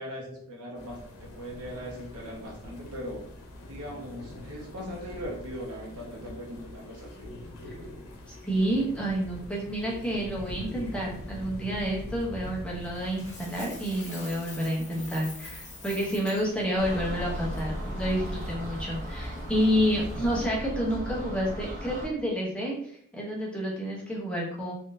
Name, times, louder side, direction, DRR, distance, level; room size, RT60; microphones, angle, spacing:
voice 1, 0.0-3.2 3.6-7.3, equal, 85° right, -2 dB, 1.0 m, -39 dB
sound 1, 0.7-20.5, left 1 dB, 80° left, 0.8 m, -44 dB
voice 2, 8.4-24.7, equal, 5° left, -4 dB, 0.7 m, -29 dB
Coin (dropping), 12.9-16.4, left 2 dB, 30° left, 1.0 m, -45 dB
sound 2, 16.8-22.1, equal, 35° right, 0.8 m, -36 dB
3.4 x 2.6 x 2.5 m, 0.66 s
head